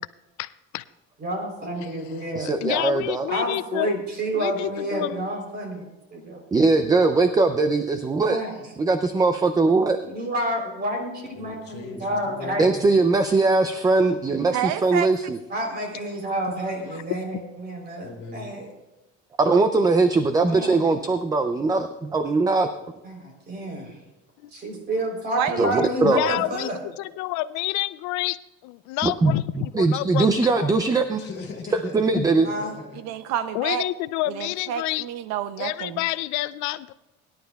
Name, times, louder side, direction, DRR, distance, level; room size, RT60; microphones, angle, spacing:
voice 1, 0.4-0.8 1.8-1.9 2.4-4.0 4.3-5.3 24.4-24.5 26.0-30.7 32.1-32.3 33.5-35.1 35.6-36.9, left 17 dB, 75° left, 16 dB, 0.4 m, -28 dB
voice 2, 1.2-2.5 3.3-5.8 6.1-6.4 8.3-8.5 10.0-13.0 15.5-18.7 20.5-20.8 23.0-24.0 24.5-26.8 32.4-32.7, right 1 dB, 35° right, 2 dB, 3.5 m, -29 dB
voice 3, 2.4-3.3 6.5-8.4 8.8-10.0 12.6-15.4 19.4-22.7 25.6-26.3 29.0-29.3 29.7-31.2 31.9-32.5, right 3 dB, 15° right, 9 dB, 0.4 m, -20 dB
voice 4, 11.3-12.9 18.0-18.6 31.1-33.0, left 3 dB, 35° left, 0 dB, 2.6 m, -39 dB
voice 5, 14.5-15.1 19.5-19.6 25.4-25.8 33.0-33.8 34.4-36.0, right 9 dB, 65° right, 12 dB, 0.6 m, -28 dB
22.5 x 11.5 x 2.3 m, 1.1 s
cardioid pair, 150°, 29 cm